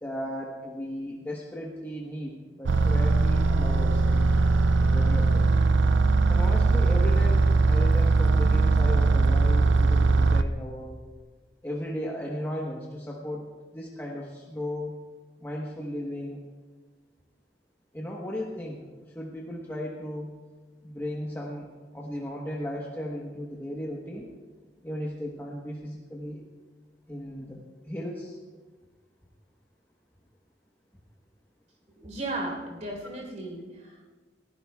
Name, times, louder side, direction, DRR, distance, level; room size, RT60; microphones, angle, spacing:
voice 1, 0.0-4.4 4.8-5.5 6.3-11.0 11.6-13.5 13.7-15.0 15.4-16.4 17.9-20.3 20.8-24.3 24.8-26.4 27.1-28.4, equal, 15° left, -3 dB, 1.2 m, -36 dB
sound 1, 2.7-10.4, right 3 dB, 80° right, 0.5 m, -21 dB
voice 2, 32.0-34.0, right 2 dB, 45° right, 1 dB, 3.8 m, -35 dB
21.5 x 15.0 x 2.3 m, 1.3 s
head